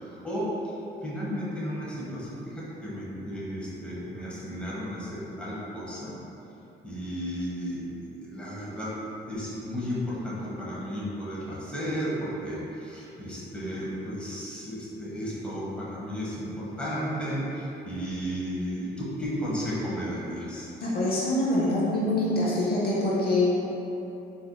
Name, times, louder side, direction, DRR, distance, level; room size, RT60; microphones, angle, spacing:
voice 1, 0.1-0.7 1.0-6.1 6.8-8.9 9.2-20.7, equal, 5° left, -8 dB, 1.0 m, -33 dB
voice 2, 20.8-23.5, left 1 dB, 50° left, -6 dB, 0.7 m, -25 dB
4.2 x 2.7 x 2.2 m, 2.9 s
cardioid pair, 90°, 20 cm